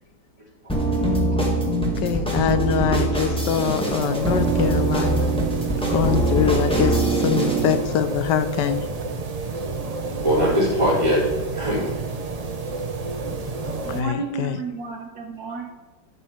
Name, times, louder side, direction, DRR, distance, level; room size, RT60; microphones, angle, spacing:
sound 1, 0.7-7.8, right 2 dB, 5° left, 1.5 m, -23 dB
voice 1, 1.0-5.3 5.9-8.8 13.9-14.6, left 9 dB, 80° left, 11 dB, 1.3 m, -24 dB
sound 2, 3.5-14.0, right 3 dB, 35° right, 0.6 m, -30 dB
voice 2, 10.0-11.2 11.5-11.9 13.2-13.5 13.8-13.9 15.5-15.6, equal, 15° right, -7 dB, 4.1 m, -23 dB
voice 3, 13.7-15.7, right 3 dB, 65° right, 2 dB, 1.6 m, -32 dB
11.0 x 7.1 x 4.5 m, 1.1 s
omnidirectional pair, 1.9 m